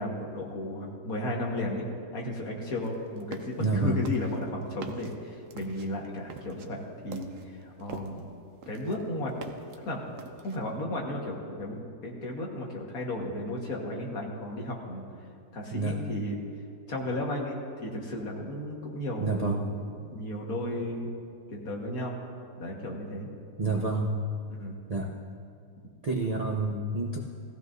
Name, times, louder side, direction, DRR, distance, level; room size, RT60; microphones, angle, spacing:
voice 1, 0.0-1.9 2.1-7.3 7.6-8.2 8.7-9.3 9.8-10.0 10.4-15.0 15.5-16.4 16.9-21.1 21.5-22.2 22.6-23.3 24.5-24.8, left 1 dB, 50° left, -1 dB, 2.0 m, -34 dB
sound 1, 2.8-3.6 4.0-8.3 8.6-9.8 10.2-10.7, right 5 dB, 60° right, 0.9 m, -44 dB
voice 2, 3.6-4.0 15.7-16.0 19.2-19.6 23.6-24.1 24.9-25.1 26.0-27.2, right 3 dB, 80° right, -2 dB, 0.3 m, -28 dB
18.0 x 15.0 x 2.7 m, 2.3 s
omnidirectional pair, 2.0 m